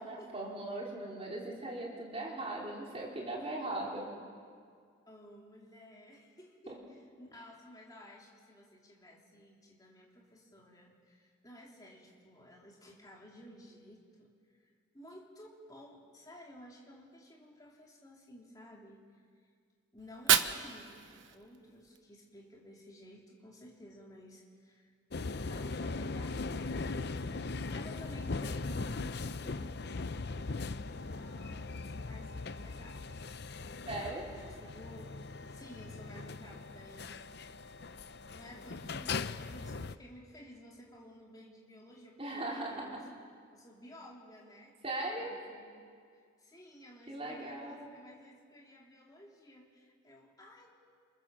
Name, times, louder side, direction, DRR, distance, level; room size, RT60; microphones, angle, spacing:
voice 1, 0.0-4.1 6.7-6.8 33.9-34.2 42.2-43.0 44.8-45.3 47.1-47.9, right 2 dB, 30° right, -3 dB, 4.6 m, -39 dB
voice 2, 5.1-14.3 14.6-14.7 14.9-19.0 19.9-24.9 25.5-29.6 30.9-32.3 32.6-33.3 33.6-37.2 38.3-43.0 43.5-44.7 45.2-45.9 46.4-50.7, equal, 20° left, -3 dB, 3.4 m, -54 dB
Fire, 20.0-22.0, right 9 dB, 70° right, 1.1 m, -31 dB
sound 1, 25.1-39.9, left 3 dB, 55° left, 0.7 m, -39 dB
27.5 x 27.0 x 7.6 m, 2.1 s
head